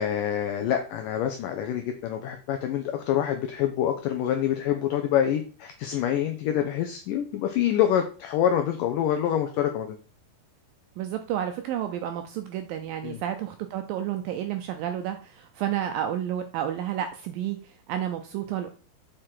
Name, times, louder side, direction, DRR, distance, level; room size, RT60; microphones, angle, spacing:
voice 1, 0.0-10.0 13.0-13.2, left 10 dB, 85° left, 6 dB, 1.9 m, -26 dB
voice 2, 11.0-18.7, right 10 dB, 85° right, 7 dB, 2.0 m, -31 dB
7.5 x 5.0 x 4.5 m, 0.38 s
omnidirectional pair, 4.7 m